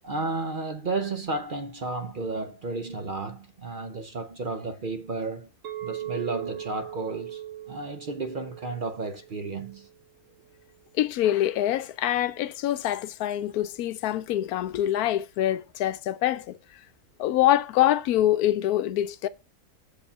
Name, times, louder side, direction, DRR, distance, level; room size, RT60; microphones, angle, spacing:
voice 1, 0.0-5.5 5.8-7.4 7.7-9.9, right 3 dB, 45° right, 0.7 m, -32 dB
Chink clink, 5.6-9.9, right 12 dB, 60° right, 1.4 m, -39 dB
voice 2, 11.0-16.6 17.2-19.3, left 12 dB, 90° left, 1.1 m, -25 dB
7.3 x 4.9 x 5.5 m
omnidirectional pair, 1.5 m